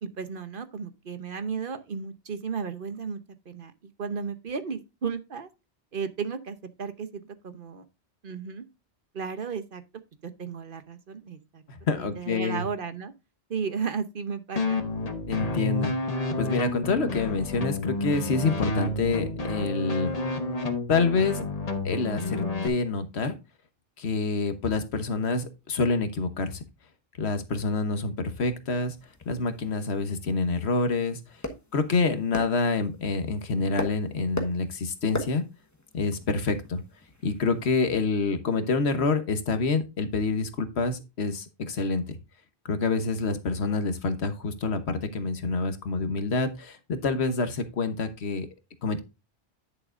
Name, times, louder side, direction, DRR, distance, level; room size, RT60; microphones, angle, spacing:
voice 1, 0.0-3.2 3.5-3.7 4.0-5.5 5.9-7.8 8.2-8.6 9.1-9.8 10.2-11.6 12.0-13.1 13.5-14.8, right 6 dB, 55° right, 1.1 m, -34 dB
voice 2, 11.7-12.7 15.3-15.9 16.4-20.1 20.9-21.4 21.8-23.4 24.0-26.6 27.2-28.9 29.2-31.2 31.7-35.4 35.9-36.8 37.2-42.2 42.7-48.5 48.8-49.0, left 4 dB, 80° left, 1.4 m, -27 dB
sound 1, 14.6-22.7, left 2 dB, 40° left, 1.2 m, -30 dB
sound 2, 28.9-37.7, left 1 dB, 15° left, 1.2 m, -40 dB
11.0 x 6.8 x 2.5 m
omnidirectional pair, 1.1 m